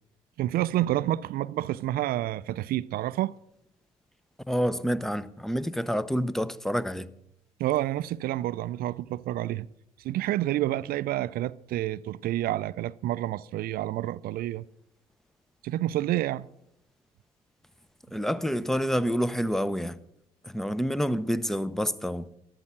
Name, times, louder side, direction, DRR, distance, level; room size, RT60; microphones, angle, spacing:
voice 1, 0.4-3.3 7.6-9.7 10.0-14.6 15.6-16.5, right 14 dB, 60° right, 0.5 m, -29 dB
voice 2, 4.5-7.1 18.1-20.0 20.4-22.3, equal, ahead, 0.8 m, -28 dB
13.5 x 12.0 x 6.0 m
hypercardioid pair, 55°, 17 cm